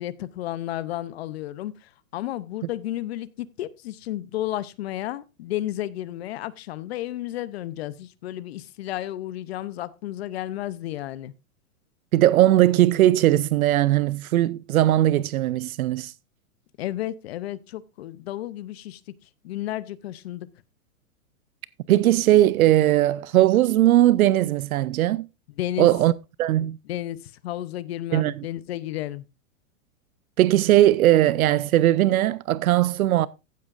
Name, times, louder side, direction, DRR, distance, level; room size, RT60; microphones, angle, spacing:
voice 1, 0.0-11.3 16.8-19.0 19.4-20.5 25.6-25.9 26.9-29.2, left 13 dB, 45° left, 0.7 m, -32 dB
voice 2, 12.1-16.1 21.9-25.3 25.8-26.1 26.4-26.8 28.1-28.4 30.4-33.3, right 14 dB, 75° right, 0.6 m, -19 dB
15.0 x 8.5 x 2.5 m
hypercardioid pair, 155°, 43 cm